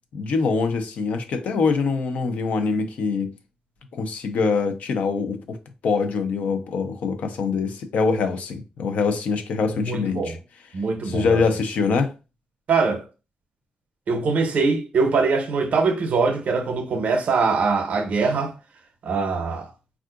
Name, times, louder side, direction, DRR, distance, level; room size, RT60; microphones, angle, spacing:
voice 1, 0.1-3.3 3.9-5.6 5.8-10.4 11.0-12.1, left 4 dB, 80° left, 0.5 m, -24 dB
voice 2, 9.7-10.3 10.7-11.2 12.7-13.0 14.1-18.5 19.0-19.7, right 4 dB, 70° right, 0.6 m, -22 dB
3.6 x 2.4 x 2.4 m
cardioid pair, 90°, 3 cm